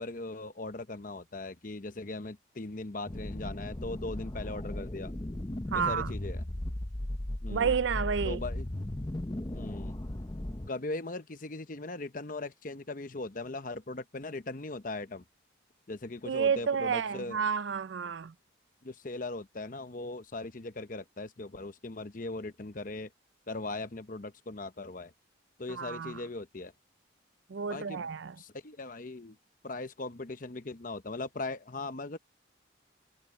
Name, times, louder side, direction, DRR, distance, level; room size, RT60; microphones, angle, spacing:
voice 1, 0.0-5.1 5.7-6.4 7.4-7.7 8.2-8.7 9.5-10.0 10.7-15.2 15.9-17.4 18.8-23.1 23.5-25.1 25.6-26.7 27.7-28.1 28.4-29.4 29.6-32.2, left 2 dB, 45° left, 0.9 m, -39 dB
sound 1, 3.1-10.7, left 1 dB, 20° left, 0.7 m, -36 dB
voice 2, 5.7-6.1 7.5-8.4 16.2-18.3 25.7-26.2 27.5-28.3, right 6 dB, 70° right, 0.5 m, -30 dB
head